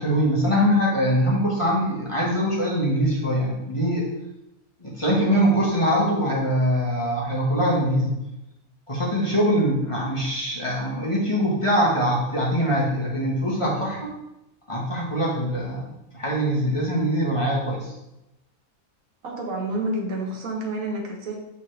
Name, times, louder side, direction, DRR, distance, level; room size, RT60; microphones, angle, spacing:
voice 1, 0.0-4.1 4.8-8.1 8.9-14.1 14.7-15.8 16.1-17.9, equal, 20° left, -5 dB, 1.4 m, -23 dB
voice 2, 19.2-21.4, right 1 dB, 70° right, 0 dB, 1.6 m, -29 dB
7.6 x 4.0 x 3.3 m, 0.92 s
omnidirectional pair, 1.6 m